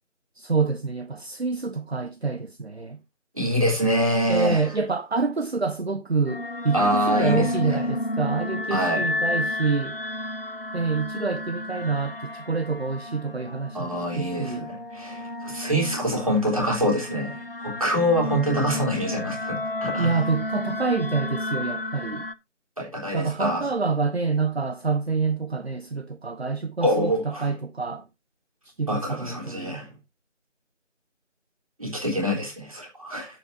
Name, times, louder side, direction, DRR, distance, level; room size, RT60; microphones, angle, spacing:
voice 1, 0.4-3.0 4.3-10.0 10.7-14.7 20.0-22.3 23.1-28.1 28.8-29.8, right 4 dB, 60° right, 0.8 m, -27 dB
voice 2, 3.3-4.7 6.7-8.0 8.7-9.0 13.7-20.2 22.8-23.7 26.8-27.5 28.9-29.9 31.8-33.4, equal, 30° right, 3.3 m, -25 dB
sound 1, 6.3-22.3, left 2 dB, 50° left, 0.8 m, -32 dB
12.0 x 8.4 x 2.7 m
figure-of-eight pair, 175°, 36 cm